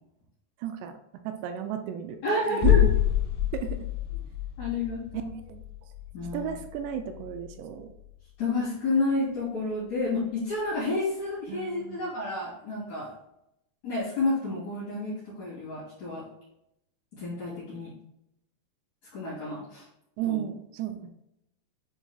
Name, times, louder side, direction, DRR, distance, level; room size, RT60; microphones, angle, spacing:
voice 1, 0.6-1.0 1.2-2.9 3.5-3.8 5.1-5.6 6.3-7.9 11.5-12.0 20.2-21.1, right 10 dB, 85° right, 7 dB, 2.7 m, -34 dB
voice 2, 2.2-2.8 4.6-5.3 6.1-6.6 8.4-13.1 13.8-16.2 17.1-17.9 19.1-19.8 20.3-20.4, left 2 dB, 45° left, -10 dB, 3.3 m, -30 dB
sound 1, 2.6-8.3 8.6-8.7, left 12 dB, 85° left, 2.7 m, -27 dB
9.0 x 4.5 x 2.3 m, 0.82 s
omnidirectional pair, 5.0 m